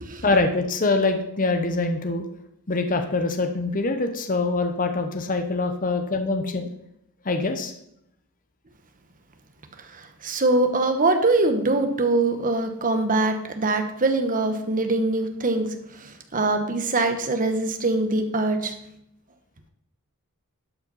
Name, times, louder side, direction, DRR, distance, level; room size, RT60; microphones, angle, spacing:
voice 1, 0.2-2.2 2.7-6.7 7.2-7.7, left 3 dB, 35° left, 6 dB, 1.0 m, -24 dB
voice 2, 9.9-18.7, right 2 dB, 35° right, 7 dB, 1.2 m, -23 dB
12.0 x 5.6 x 5.5 m, 0.76 s
head